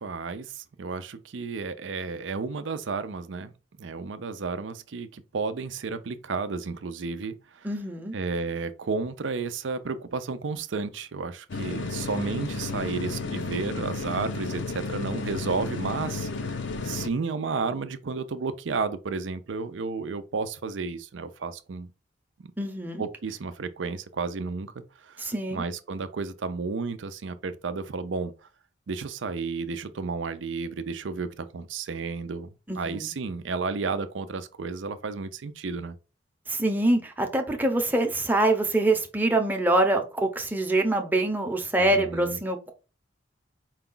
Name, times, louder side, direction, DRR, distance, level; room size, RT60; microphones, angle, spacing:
voice 1, 0.0-3.5 3.8-7.7 8.1-21.9 22.4-22.5 23.0-25.2 25.5-28.3 28.9-32.5 32.7-35.9 41.8-42.4, right 4 dB, 85° right, 0.5 m, -32 dB
voice 2, 7.6-8.1 22.6-23.0 25.2-25.6 32.7-33.1 36.5-42.7, right 2 dB, 10° right, 0.7 m, -25 dB
sound 1, 11.5-17.1, left 3 dB, 75° left, 0.5 m, -32 dB
4.7 x 2.3 x 3.8 m
head